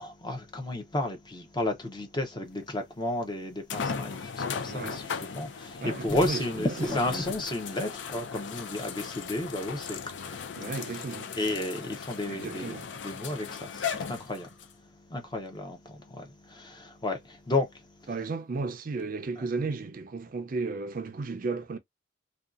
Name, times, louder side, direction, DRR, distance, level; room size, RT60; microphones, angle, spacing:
voice 1, 0.0-10.0 11.3-12.8 13.0-14.5 15.1-17.7, left 1 dB, 25° left, 0.7 m, -32 dB
sound 1, 2.6-2.7 3.7-14.7 15.5-15.6 19.0-19.1, left 6 dB, 70° left, 0.4 m, -37 dB
voice 2, 4.7-5.0 5.8-7.3 10.6-11.3 12.3-12.9 18.1-21.8, right 3 dB, 45° right, 0.4 m, -34 dB
2.6 x 2.3 x 2.3 m
head